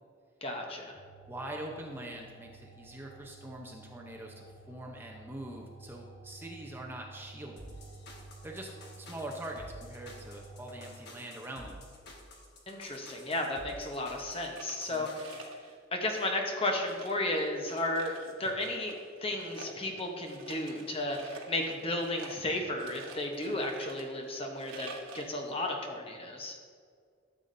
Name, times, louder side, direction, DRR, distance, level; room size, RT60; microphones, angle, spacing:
voice 1, 0.4-1.0 12.7-15.5 15.9-18.1 18.4-18.9 19.2-26.6, left 1 dB, 30° left, 2 dB, 0.9 m, -34 dB
sound 1, 1.0-11.0, right 3 dB, 60° right, 2.2 m, -52 dB
voice 2, 1.3-7.7 8.4-8.7 9.0-11.8 14.9-15.1, right 1 dB, 10° right, 0 dB, 0.7 m, -43 dB
sound 2, 7.6-15.5, left 1 dB, 55° left, 1.3 m, -51 dB
sound 3, 14.3-15.7 16.0-16.5 16.9-19.1 19.4-25.5, right 3 dB, 90° right, 1.1 m, -49 dB
12.5 x 6.9 x 2.6 m, 2.1 s
head